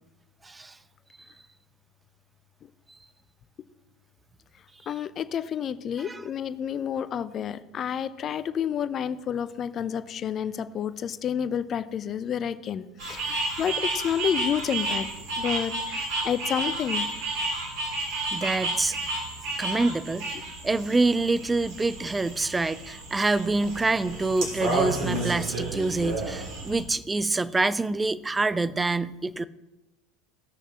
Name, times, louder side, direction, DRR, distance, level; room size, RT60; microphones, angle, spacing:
voice 1, 0.4-0.8 6.0-6.2 18.3-19.0 19.6-20.3 20.6-29.4, right 3 dB, 15° right, 17 dB, 0.4 m, -26 dB
voice 2, 4.9-15.1 15.4-17.1, left 8 dB, 40° left, 13 dB, 0.5 m, -30 dB
sound 1, 13.0-26.8, right 2 dB, 60° right, 3.5 m, -31 dB
16.5 x 6.5 x 2.9 m, 1.0 s
hypercardioid pair, 75°, 0 cm